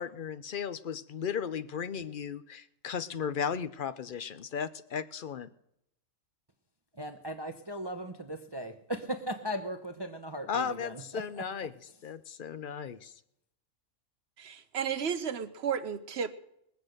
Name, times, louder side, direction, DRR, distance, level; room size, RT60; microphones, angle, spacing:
voice 1, 0.0-5.5 10.5-11.7 12.0-13.2, left 7 dB, 50° left, 14 dB, 0.7 m, -35 dB
voice 2, 6.9-11.4, equal, 20° right, 7 dB, 0.8 m, -38 dB
voice 3, 14.4-16.3, right 7 dB, 55° right, 11 dB, 1.1 m, -33 dB
21.5 x 8.1 x 6.5 m, 0.77 s
omnidirectional pair, 1.4 m